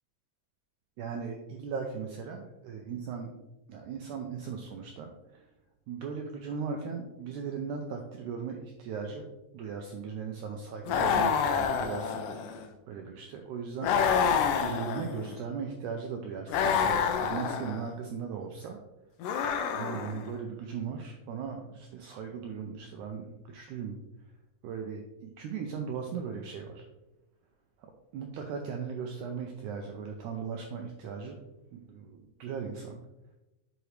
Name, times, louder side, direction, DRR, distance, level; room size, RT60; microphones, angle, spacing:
voice 1, 1.0-3.3 3.7-5.5 5.9-9.3 9.5-12.2 12.9-18.8 19.7-24.0 24.6-26.9 27.8-31.4 31.7-33.0, right 6 dB, 85° right, 3 dB, 1.8 m, -38 dB
sound 1, 10.9-12.6 13.8-15.4 16.5-17.9 19.2-20.3, left 7 dB, 80° left, 2.1 m, -28 dB
8.0 x 5.0 x 3.2 m, 1.0 s
omnidirectional pair, 4.2 m